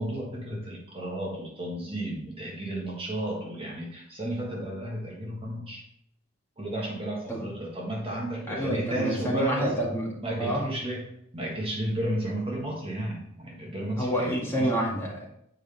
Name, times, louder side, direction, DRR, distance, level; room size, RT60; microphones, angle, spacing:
voice 1, 0.0-5.8 6.6-9.7 10.2-14.7, right 1 dB, 25° right, -2 dB, 1.4 m, -33 dB
voice 2, 8.5-10.6 14.0-15.3, equal, 10° left, -5 dB, 1.9 m, -28 dB
7.4 x 5.1 x 3.4 m, 0.76 s
head